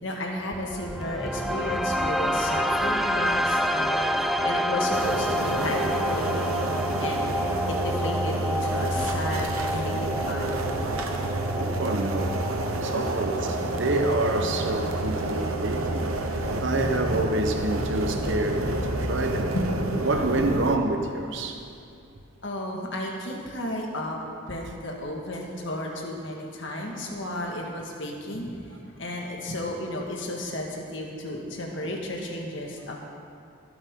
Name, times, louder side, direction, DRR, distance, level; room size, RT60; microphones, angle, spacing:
voice 1, 0.0-4.1 4.4-7.2 7.7-10.8 11.1-11.2 12.9-13.2 14.6-14.8 15.2-15.3 19.5-19.7 20.0-20.5 22.4-24.2 24.5-33.0, left 1 dB, 60° left, -1 dB, 1.9 m, -33 dB
sound 1, 0.5-16.5, equal, ahead, 0.3 m, -29 dB
sound 2, 4.9-20.8, right 2 dB, 85° right, 1.1 m, -29 dB
voice 2, 11.6-12.3 12.8-19.5 20.0-21.7 31.8-31.9, right 2 dB, 60° right, 5 dB, 1.0 m, -28 dB
sound 3, 15.0-15.3 15.6-21.7, equal, 40° left, 3.9 m, -39 dB
24.0 x 8.1 x 3.8 m, 2.5 s
head